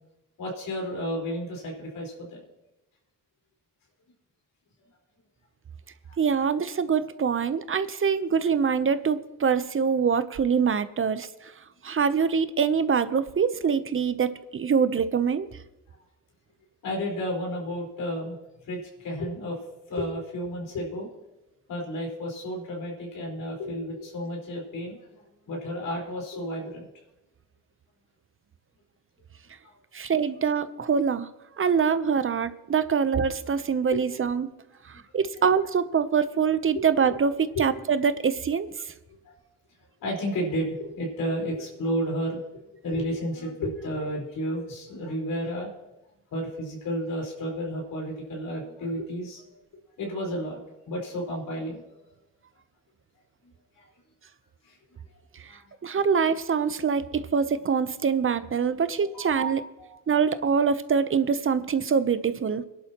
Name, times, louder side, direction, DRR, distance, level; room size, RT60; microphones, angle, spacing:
voice 1, 0.4-2.4 6.1-6.2 16.8-18.4 18.7-19.6 19.9-21.1 21.7-26.9 29.6-29.7 33.9-34.0 34.9-35.0 37.5-37.6 39.2-39.3 40.0-42.4 42.8-45.7 46.3-49.6 50.0-50.6 50.8-52.0 53.8-53.9 54.6-54.8 55.5-55.6 58.8-59.5 59.8-60.0, equal, 85° left, -1 dB, 4.7 m, -32 dB
voice 2, 6.2-11.5 11.8-15.5 29.9-31.3 31.6-34.5 34.9-38.9 55.4-55.5 55.8-59.6 60.1-62.6, right 6 dB, 40° right, 13 dB, 0.8 m, -24 dB
23.0 x 11.0 x 3.0 m, 0.95 s
cardioid pair, 75°, 32 cm